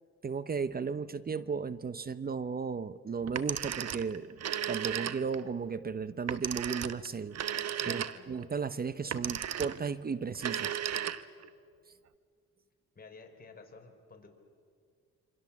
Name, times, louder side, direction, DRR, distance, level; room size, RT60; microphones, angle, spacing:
voice 1, 0.2-4.4 4.7-7.4 7.9-10.8, right 5 dB, 30° right, 15 dB, 0.8 m, -35 dB
Telephone, 3.3-5.5 6.3-8.4 9.1-9.9 10.3-11.5, right 10 dB, 60° right, 1.0 m, -35 dB
voice 2, 7.8-8.3 12.9-14.3, left 4 dB, 30° left, 2 dB, 4.4 m, -51 dB
27.0 x 25.5 x 7.4 m, 2.2 s
cardioid pair, 90°, 30 cm